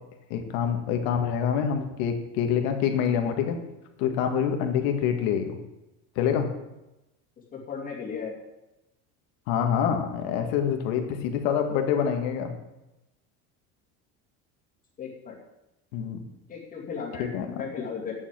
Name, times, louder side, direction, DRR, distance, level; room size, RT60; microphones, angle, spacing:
voice 1, 0.3-3.6 4.0-5.6 6.2-6.5 9.5-12.5 15.9-16.2 17.2-17.5, left 8 dB, 70° left, 5 dB, 2.0 m, -26 dB
voice 2, 7.5-8.3 15.0-15.4 16.5-18.1, left 6 dB, 25° left, -1 dB, 2.5 m, -35 dB
9.3 x 7.2 x 9.0 m, 0.95 s
cardioid pair, 175°, 33 cm